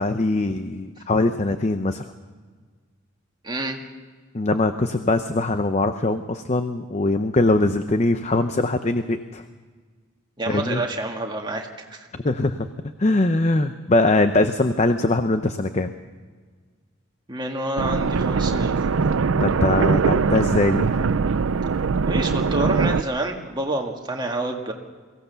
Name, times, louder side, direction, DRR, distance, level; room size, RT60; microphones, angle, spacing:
voice 1, 0.0-2.0 4.3-9.4 10.5-10.8 12.2-12.7 13.0-15.9 19.4-21.1, left 2 dB, 30° left, 9 dB, 0.6 m, -22 dB
voice 2, 3.4-3.8 10.4-12.1 17.3-18.7 22.1-24.7, right 2 dB, 20° right, 2 dB, 1.9 m, -28 dB
sound 1, 17.8-23.0, right 5 dB, 70° right, 0.5 m, -21 dB
23.0 x 17.0 x 6.9 m, 1.5 s
head